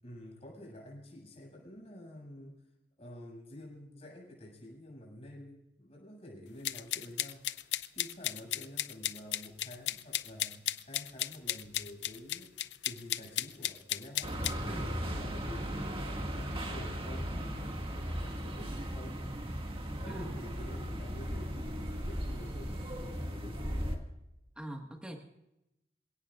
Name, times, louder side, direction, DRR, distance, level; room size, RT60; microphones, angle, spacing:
voice 1, 0.0-2.6 3.0-7.5 7.9-12.5 12.8-19.3 20.0-24.1, left 1 dB, 35° left, -2 dB, 7.0 m, -49 dB
sound 1, 6.6-14.6, left 13 dB, 80° left, 0.6 m, -35 dB
sound 2, 14.2-24.0, equal, 30° right, 2.0 m, -37 dB
voice 2, 20.0-20.4 24.6-25.2, right 1 dB, 5° right, 2 dB, 1.7 m, -43 dB
27.5 x 17.5 x 2.5 m, 0.89 s
head